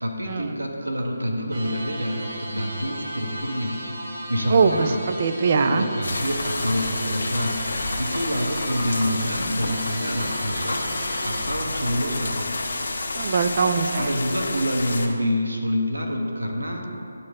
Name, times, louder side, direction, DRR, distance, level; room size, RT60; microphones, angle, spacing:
voice 1, 0.0-3.8 4.3-5.0 5.6-7.6 8.0-10.8 11.2-12.4 14.0-16.9, equal, 90° right, 1 dB, 1.3 m, -27 dB
sound 1, 1.5-11.5, right 1 dB, 55° right, 1.5 m, -36 dB
voice 2, 4.5-5.9 13.2-14.1, right 5 dB, 40° right, 8 dB, 0.5 m, -21 dB
sound 2, 6.0-15.1, left 2 dB, 60° left, 1.0 m, -30 dB
sound 3, 6.4-12.9, left 2 dB, 35° left, 1.4 m, -38 dB
11.0 x 4.5 x 3.7 m, 2.6 s
figure-of-eight pair, 155°, 0 cm